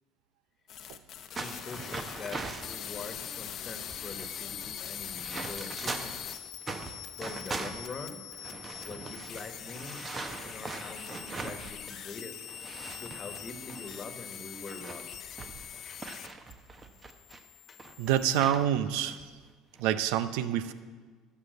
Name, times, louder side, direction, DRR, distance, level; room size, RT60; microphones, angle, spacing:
sound 1, 0.7-16.5 16.8-18.4, left 10 dB, 55° left, 0.7 m, -43 dB
voice 1, 1.4-6.2 7.2-8.2 8.8-12.4 13.0-15.1 15.8-16.3 17.7-17.8, left 4 dB, 35° left, 7 dB, 1.4 m, -44 dB
sound 2, 1.4-2.8 3.5-3.6 3.8-6.2 6.6-12.1 12.3-17.4 17.8-18.6 19.1-19.2 19.8-20.1, right 3 dB, 30° right, 1.1 m, -41 dB
voice 2, 18.0-19.2 19.8-20.7, right 10 dB, 75° right, 13 dB, 0.6 m, -27 dB
13.0 x 5.6 x 8.0 m, 1.5 s
supercardioid pair, 80°, 0 cm